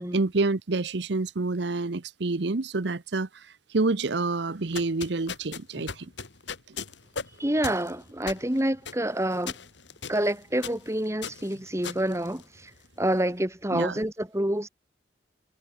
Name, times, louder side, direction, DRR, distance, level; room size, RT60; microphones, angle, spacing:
voice 1, 0.0-6.1 6.7-6.8 13.7-14.0, right 3 dB, 65° right, 0.8 m, -28 dB
sound 1, 4.6-12.9, left 6 dB, 70° left, 2.5 m, -39 dB
voice 2, 7.4-9.5 10.1-12.7 13.0-14.7, right 1 dB, 15° right, 2.3 m, -27 dB
head